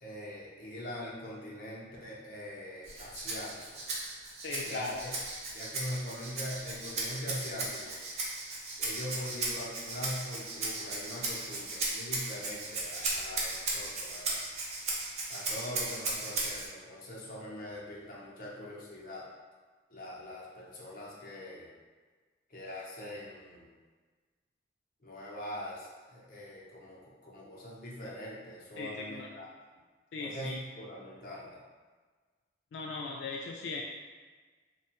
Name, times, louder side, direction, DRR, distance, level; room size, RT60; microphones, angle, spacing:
voice 1, 0.0-3.8 4.6-5.1 5.5-7.9 8.8-14.4 15.3-19.3 19.9-21.7 22.5-23.7 25.0-29.5 30.2-31.6, left 1 dB, 50° left, -5 dB, 0.7 m, -42 dB
Rattle (instrument), 2.8-16.7, right 2 dB, 40° right, 0.4 m, -36 dB
voice 2, 4.4-5.0 28.8-29.3 30.1-30.6 32.7-33.8, left 3 dB, 85° left, -1 dB, 0.3 m, -38 dB
2.9 x 2.3 x 2.8 m, 1.4 s
head